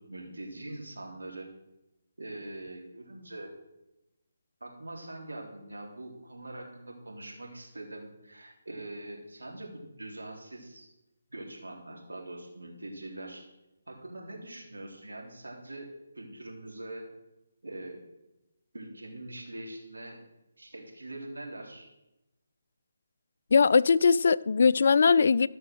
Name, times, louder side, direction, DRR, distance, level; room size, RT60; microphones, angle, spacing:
voice 1, 0.0-1.5 2.2-3.5 4.6-10.9 11.3-13.5 13.9-17.1 17.6-18.0 18.7-20.2 20.6-21.9, right 2 dB, 85° right, 3.8 m, -43 dB
voice 2, 23.5-25.5, left 5 dB, 60° left, 0.3 m, -21 dB
14.0 x 6.3 x 6.4 m
figure-of-eight pair, 155°, 0 cm